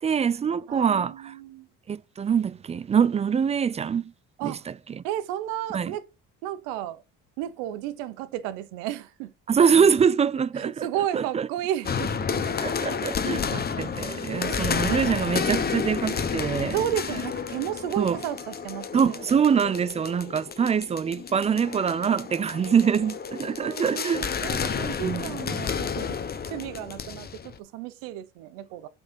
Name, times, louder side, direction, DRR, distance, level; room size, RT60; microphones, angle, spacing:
voice 1, 0.0-1.3 1.9-4.1 4.4-4.5 5.0-5.1 5.7-5.9 9.5-10.9 11.1-11.5 12.4-16.8 18.0-18.2 18.9-24.2 25.0-25.3, right 7 dB, 20° right, 0.3 m, -24 dB
voice 2, 0.7-1.7 4.4-4.7 5.0-6.0 6.4-7.0 7.4-9.3 10.5-12.3 14.5-14.9 16.7-19.4 23.6-26.2 26.5-28.9, right 12 dB, 90° right, 0.9 m, -33 dB
sound 1, 11.8-27.6, left 6 dB, 30° left, 0.9 m, -31 dB
7.9 x 4.1 x 5.3 m
supercardioid pair, 100°, 31 cm